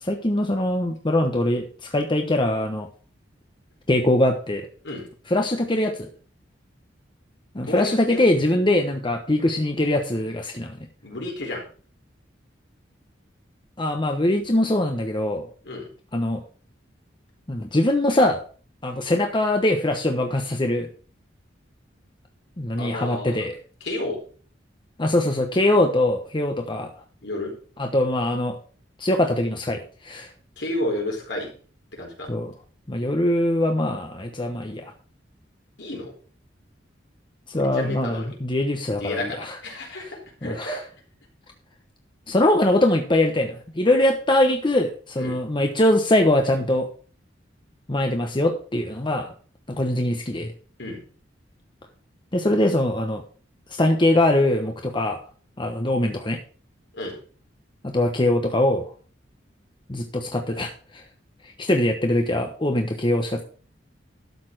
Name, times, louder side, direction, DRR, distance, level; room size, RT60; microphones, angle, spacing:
voice 1, 0.0-2.9 3.9-4.7 5.3-6.1 7.5-10.8 13.8-15.5 16.1-16.4 17.5-18.4 18.8-20.9 22.6-23.6 25.0-26.9 27.8-28.6 29.0-30.3 32.3-32.5 32.9-34.9 37.5-39.6 40.0-40.1 40.4-40.8 42.3-46.9 47.9-49.3 49.7-50.5 52.3-53.2 53.7-55.2 55.6-56.4 57.8-58.8 59.9-61.0 61.4-63.4, left 1 dB, 25° left, 4 dB, 1.1 m, -22 dB
voice 2, 7.7-8.3 11.0-11.6 15.6-15.9 22.8-23.4 23.8-24.2 27.2-27.5 30.6-31.5 31.9-32.3 35.8-36.1 37.5-38.3 39.0-40.2 40.4-40.8 45.2-45.4 50.8-51.0 56.9-57.2, left 1 dB, 70° left, 1 dB, 4.4 m, -31 dB
12.5 x 6.9 x 4.8 m, 0.41 s
head